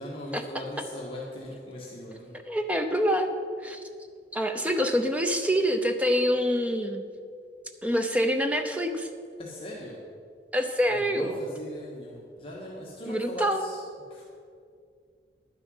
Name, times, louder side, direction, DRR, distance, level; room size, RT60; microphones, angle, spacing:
voice 1, 0.0-2.4 9.4-10.0 10.8-13.8 14.1-14.2, left 1 dB, 30° left, -4 dB, 1.6 m, -39 dB
voice 2, 2.5-3.3 3.6-3.8 4.3-7.0 7.8-9.1 10.5-11.4 13.1-13.6, equal, 10° right, 6 dB, 0.7 m, -26 dB
11.5 x 9.5 x 5.5 m, 2.3 s
head